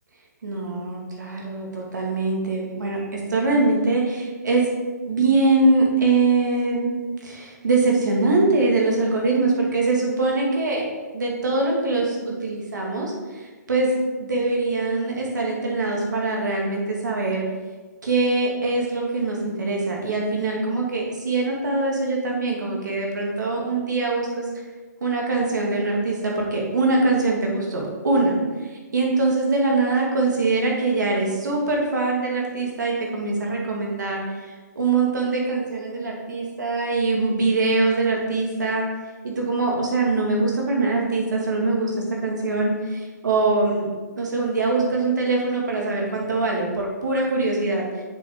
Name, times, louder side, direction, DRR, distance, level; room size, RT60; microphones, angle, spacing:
voice 1, 0.4-4.7 5.0-10.8 11.1-13.1 13.7-13.9 14.2-17.5 18.0-24.4 25.0-28.4 28.9-34.2 34.8-38.9 39.2-41.9 42.2-43.9 44.2-47.9, right 3 dB, 85° right, -1 dB, 2.1 m, -23 dB
6.9 x 5.7 x 3.8 m, 1.3 s
hypercardioid pair, 160°, 10 cm